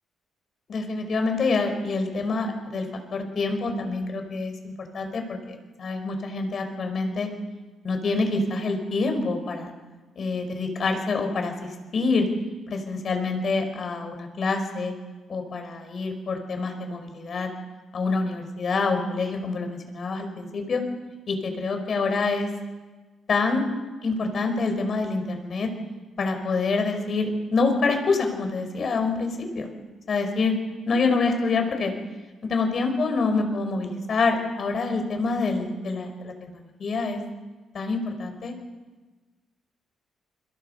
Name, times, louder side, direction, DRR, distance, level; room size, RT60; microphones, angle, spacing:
voice 1, 0.7-2.8 3.1-7.3 7.8-9.7 10.1-11.5 11.9-12.3 12.7-14.9 15.3-17.5 17.9-20.8 21.3-22.5 23.3-23.6 24.0-25.7 26.2-29.7 30.1-30.5 30.9-31.9 32.5-37.2 37.7-38.5, left 3 dB, 50° left, 5 dB, 5.1 m, -26 dB
29.5 x 22.5 x 5.6 m, 1.3 s
cardioid pair, 90°, 0 cm